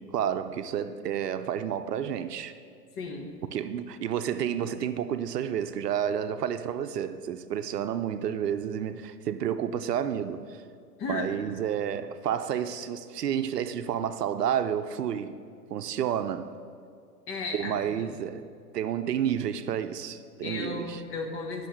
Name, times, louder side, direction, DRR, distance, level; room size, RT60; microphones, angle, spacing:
voice 1, 0.0-2.5 3.5-10.6 11.1-15.4 15.7-16.5 17.5-18.4 18.7-21.0, right 9 dB, 70° right, 0.7 m, -30 dB
voice 2, 3.0-3.4 11.0-11.3 17.3-18.2 20.4-21.7, left 3 dB, 25° left, 1.4 m, -35 dB
10.5 x 6.5 x 6.4 m
hypercardioid pair, 120°, 49 cm